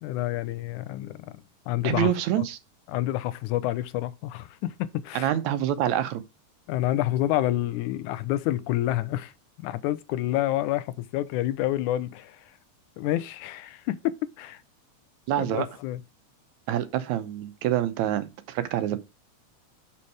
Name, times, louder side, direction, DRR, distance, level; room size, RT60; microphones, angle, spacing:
voice 1, 0.0-2.1 2.9-5.3 6.7-9.3 9.6-12.4 13.0-14.0 14.4-14.6 15.4-16.0, left 14 dB, 90° left, 2.1 m, -28 dB
voice 2, 1.8-2.6 5.1-6.2 15.3-15.7 16.7-19.0, right 11 dB, 75° right, 2.1 m, -26 dB
7.1 x 5.8 x 4.7 m
omnidirectional pair, 3.4 m